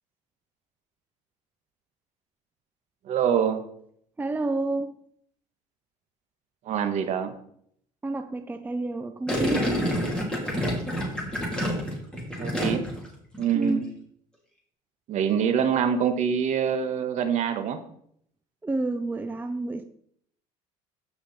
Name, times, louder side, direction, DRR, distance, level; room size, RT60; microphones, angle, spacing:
voice 1, 3.0-3.6 6.6-7.3 12.4-12.8 13.4-13.8 15.1-17.8, right 8 dB, 55° right, 1.5 m, -25 dB
voice 2, 4.2-4.9 8.0-9.8 13.5-13.8 18.6-19.8, right 2 dB, 10° right, 0.6 m, -29 dB
Gurgling, 9.3-13.1 13.3-13.7, equal, 5° left, 3.3 m, -28 dB
15.0 x 5.1 x 4.3 m
cardioid pair, 115°, 14 cm